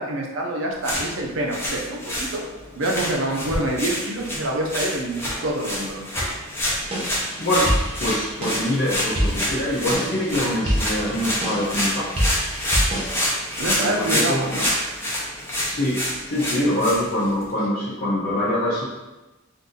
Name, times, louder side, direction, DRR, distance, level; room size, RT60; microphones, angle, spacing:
voice 1, 0.0-2.4 2.8-6.0 13.3-14.7 16.4-16.7, right 1 dB, 70° right, 0 dB, 0.6 m, -27 dB
sound 1, 0.7-17.5, equal, 10° left, 0.7 m, -28 dB
sound 2, 6.8-13.2, equal, 30° right, 0.8 m, -27 dB
voice 2, 7.4-12.0 13.8-14.6 15.6-18.8, left 1 dB, 50° left, -9 dB, 0.7 m, -24 dB
2.7 x 2.6 x 3.8 m, 1.1 s
head